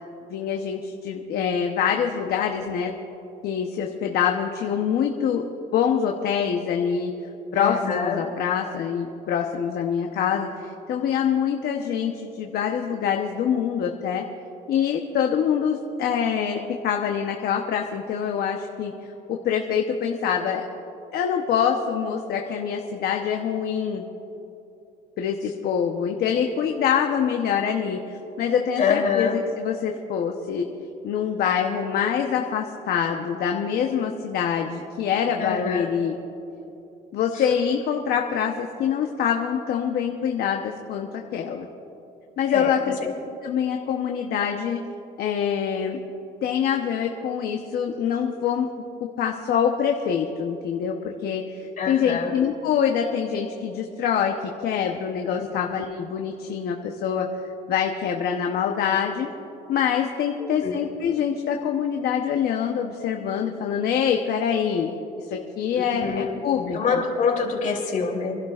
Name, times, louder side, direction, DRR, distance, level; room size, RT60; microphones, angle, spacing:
voice 1, 0.3-2.9 3.4-5.4 5.7-7.1 7.5-14.3 14.7-18.9 19.3-20.6 21.1-24.0 25.2-30.7 31.0-36.2 37.1-41.7 42.4-42.9 43.4-44.8 45.2-46.0 46.4-48.7 49.2-54.3 54.6-57.3 57.7-59.3 59.7-65.0 65.3-67.0, left 8 dB, 65° left, 2 dB, 0.9 m, -25 dB
voice 2, 7.5-8.2 28.8-29.4 35.4-35.8 42.5-42.7 43.0-43.1 51.8-52.3 55.3-55.4 60.4-60.8 65.9-66.4 66.7-68.4, left 5 dB, 50° left, -1 dB, 3.0 m, -25 dB
28.5 x 12.0 x 2.5 m, 3.0 s
cardioid pair, 110°, 17 cm